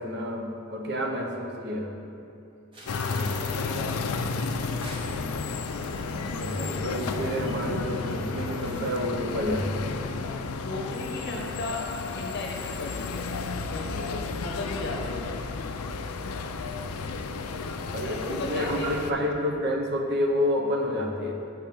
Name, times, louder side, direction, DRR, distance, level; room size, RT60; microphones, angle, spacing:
voice 1, 0.0-1.9 6.4-9.9 17.9-21.3, left 1 dB, 50° right, 1 dB, 0.9 m, -29 dB
sound 1, 2.7-9.0, right 1 dB, 25° right, 0.9 m, -45 dB
sound 2, 2.8-19.1, left 4 dB, 90° left, 0.4 m, -32 dB
voice 2, 2.8-4.5 10.5-11.8 12.1-13.3 13.7-15.3 18.0-18.9, left 2 dB, 50° left, 0 dB, 0.8 m, -36 dB
7.3 x 4.6 x 5.3 m, 2.7 s
head